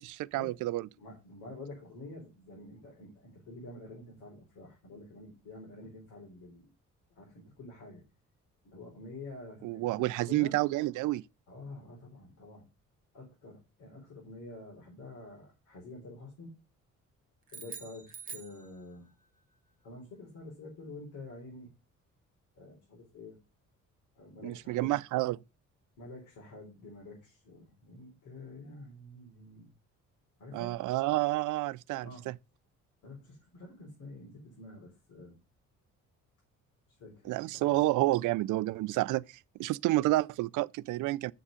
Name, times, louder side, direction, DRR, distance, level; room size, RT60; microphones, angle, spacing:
voice 1, 0.0-0.9 9.6-11.2 24.4-25.4 30.5-32.4 37.3-39.2 39.6-41.3, right 18 dB, 80° right, 0.5 m, -29 dB
voice 2, 0.9-6.7 7.1-8.0 8.6-10.6 11.5-12.7 13.1-16.5 17.5-19.1 19.8-21.7 22.6-23.4 24.2-24.9 26.0-29.7 30.4-30.7 32.0-32.3 33.0-35.4 37.0-37.3 37.6-37.8, left 2 dB, 85° left, 3.9 m, -48 dB
sound 1, 17.5-19.2, right 6 dB, 25° right, 1.6 m, -46 dB
7.5 x 7.4 x 5.0 m
cardioid pair, 90°, 30 cm